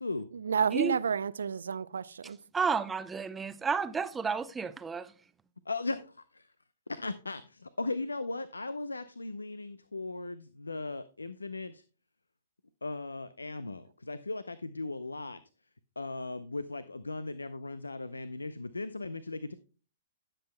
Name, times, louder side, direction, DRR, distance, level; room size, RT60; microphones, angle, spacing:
voice 1, 0.3-2.4, right 6 dB, 70° right, 0.5 m, -30 dB
voice 2, 2.5-5.1, right 5 dB, 10° right, 0.6 m, -31 dB
voice 3, 5.7-6.5 6.9-11.8 12.8-15.4 16.0-19.5, left 3 dB, 90° left, 0.5 m, -37 dB
16.5 x 7.6 x 2.2 m
figure-of-eight pair, 120°, 0 cm